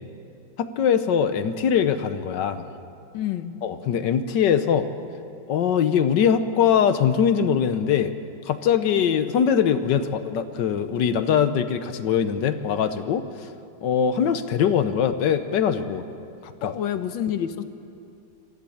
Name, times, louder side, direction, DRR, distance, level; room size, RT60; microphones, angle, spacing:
voice 1, 0.6-2.6 3.6-4.9 5.5-8.1 8.5-13.2 13.8-16.0 16.4-16.7, left 8 dB, 70° left, 11 dB, 1.4 m, -22 dB
voice 2, 3.1-3.6 16.6-17.6, left 10 dB, 90° left, 10 dB, 1.7 m, -28 dB
22.0 x 15.0 x 8.5 m, 2.5 s
omnidirectional pair, 2.0 m